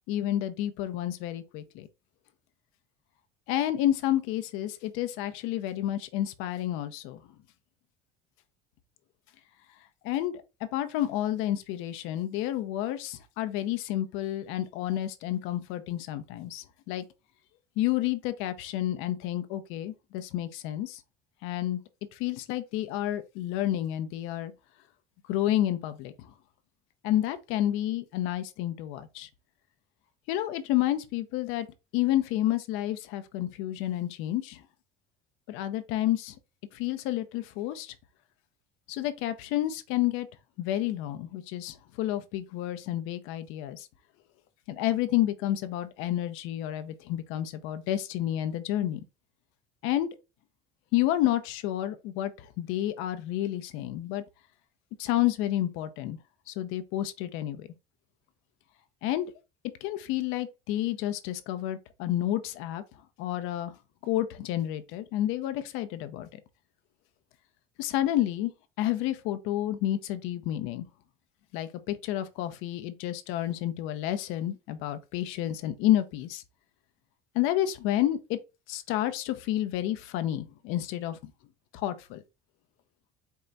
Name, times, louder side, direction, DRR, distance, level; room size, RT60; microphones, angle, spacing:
voice 1, 0.1-1.9 3.5-7.2 10.0-10.3 10.7-17.0 17.8-21.0 21.4-21.8 22.1-24.5 25.3-26.3 27.0-29.3 30.3-31.7 31.9-34.6 35.5-36.4 36.7-37.9 38.9-40.3 40.6-43.9 44.7-49.0 49.8-50.1 50.9-54.2 55.0-56.2 56.5-57.7 59.0-59.3 59.8-62.8 63.2-63.7 64.0-66.4 67.8-68.5 68.8-70.9 71.5-76.4 77.3-78.4 78.7-81.3 81.7-82.2, left 13 dB, 75° left, 0.6 m, -30 dB
4.6 x 2.2 x 3.9 m
supercardioid pair, 105°, 21 cm